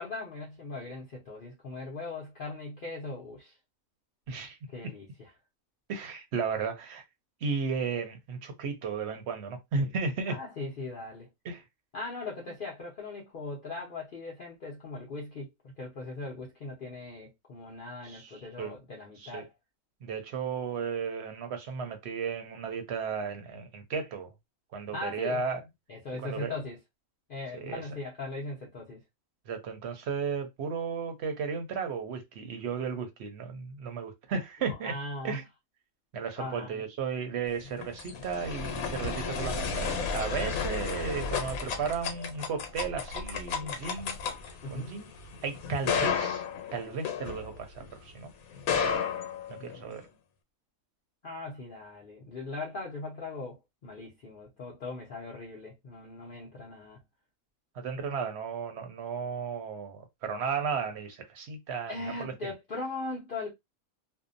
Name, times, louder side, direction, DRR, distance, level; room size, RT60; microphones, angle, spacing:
voice 1, 0.0-3.5 4.7-5.3 10.3-11.3 11.9-19.5 24.9-25.4 25.9-26.8 27.3-29.0 34.7-35.4 36.4-36.8 44.6-45.0 49.6-50.0 51.2-57.0 61.9-63.5, left 2 dB, 55° left, 0.6 m, -39 dB
voice 2, 4.3-4.6 5.9-7.0 7.4-10.4 11.4-11.6 18.0-18.8 19.2-19.5 20.0-24.3 24.7-25.6 26.2-26.5 27.6-27.8 29.5-34.9 35.2-35.4 36.1-44.2 44.7-45.1 45.4-46.4 46.7-48.3 48.7-48.9 49.5-50.1 57.7-62.5, right 5 dB, 60° right, 0.8 m, -34 dB
sound 1, 37.6-47.9 48.5-50.0, left 6 dB, 80° left, 1.1 m, -33 dB
2.7 x 2.1 x 2.5 m
omnidirectional pair, 1.5 m